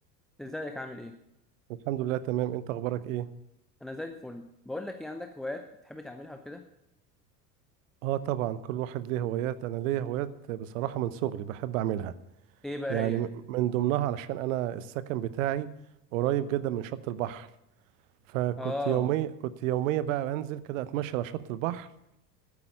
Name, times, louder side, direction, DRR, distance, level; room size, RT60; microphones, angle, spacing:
voice 1, 0.4-1.1 3.8-6.6 12.6-13.2 18.6-19.1, left 2 dB, ahead, 6 dB, 0.5 m, -37 dB
voice 2, 1.9-3.3 8.0-12.1 12.9-15.7 16.1-17.5 18.3-21.9, right 13 dB, 50° right, 15 dB, 0.9 m, -30 dB
12.0 x 9.5 x 6.8 m, 0.86 s
figure-of-eight pair, 75°, 49 cm